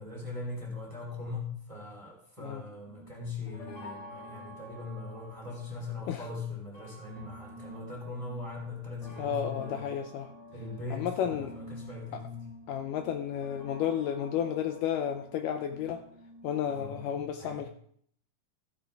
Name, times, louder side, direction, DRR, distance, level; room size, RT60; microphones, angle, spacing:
voice 1, 0.0-9.9 10.5-12.4 16.7-17.6, left 3 dB, 10° right, -1 dB, 2.6 m, -40 dB
sound 1, 2.9-17.0, left 1 dB, 40° left, 2.7 m, -49 dB
voice 2, 9.2-10.3 10.9-11.5 12.1-12.2 12.7-16.0 16.4-17.7, left 9 dB, 75° left, 6 dB, 2.1 m, -32 dB
14.5 x 9.7 x 3.5 m, 0.62 s
omnidirectional pair, 4.1 m